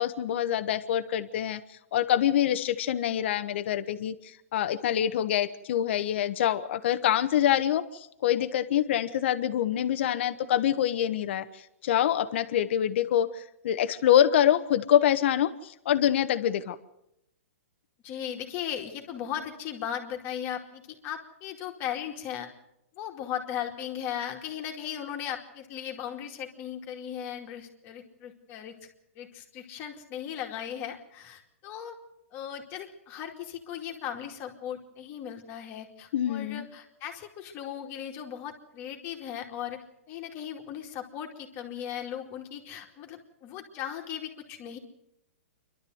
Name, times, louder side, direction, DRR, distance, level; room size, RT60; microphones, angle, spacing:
voice 1, 0.0-1.6 1.9-16.8 36.1-36.7, left 10 dB, 55° left, 9 dB, 1.2 m, -25 dB
voice 2, 18.0-22.5 23.0-28.7 29.2-31.9 32.3-44.8, left 9 dB, 30° left, 3 dB, 2.5 m, -37 dB
27.5 x 12.5 x 7.9 m, 0.81 s
hypercardioid pair, 145°, 8 cm